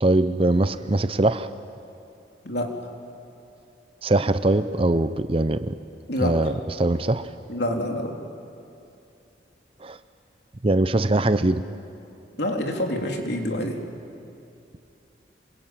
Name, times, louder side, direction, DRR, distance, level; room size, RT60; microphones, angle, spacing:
voice 1, 0.0-1.5 4.0-5.8 6.2-7.3 9.8-10.0 10.6-11.6, right 2 dB, 30° right, 12 dB, 0.7 m, -22 dB
voice 2, 7.5-8.1 12.4-13.8, left 1 dB, 65° left, 2 dB, 3.4 m, -26 dB
27.0 x 23.0 x 9.1 m, 2.7 s
head